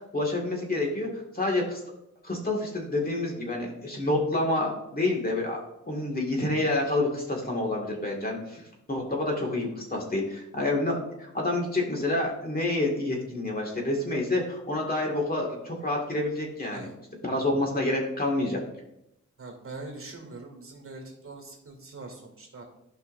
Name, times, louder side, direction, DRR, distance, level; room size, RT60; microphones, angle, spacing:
voice 1, 0.0-1.8 2.2-8.6 8.9-16.9 17.2-18.6, left 2 dB, 30° left, -1 dB, 2.1 m, -28 dB
voice 2, 19.4-22.6, right 3 dB, 45° right, 1 dB, 2.3 m, -43 dB
12.0 x 5.5 x 2.6 m, 0.81 s
wide cardioid pair, 95°, 30 cm